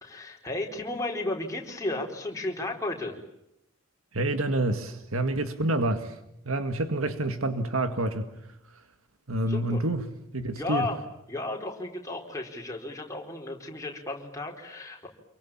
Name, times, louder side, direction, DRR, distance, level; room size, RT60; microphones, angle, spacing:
voice 1, 0.0-3.2 9.5-9.8 10.5-11.0 11.3-15.1, left 2 dB, 15° left, 0 dB, 4.5 m, -33 dB
voice 2, 4.1-6.2 6.4-8.3 8.7-8.8 9.3-10.0 10.3-10.9, right 1 dB, 80° right, 8 dB, 2.0 m, -28 dB
28.0 x 23.5 x 8.8 m, 0.80 s
head